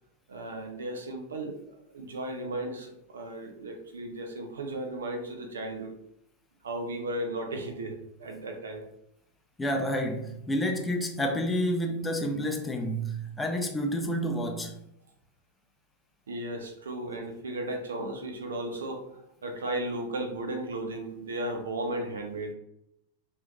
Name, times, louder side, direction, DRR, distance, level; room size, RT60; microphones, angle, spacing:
voice 1, 0.3-5.9 6.6-8.8 16.3-22.5, right 1 dB, 65° right, 0.6 m, -35 dB
voice 2, 9.6-14.7, equal, 10° left, 0.5 m, -29 dB
4.3 x 2.7 x 2.3 m
figure-of-eight pair, 90°, 0 cm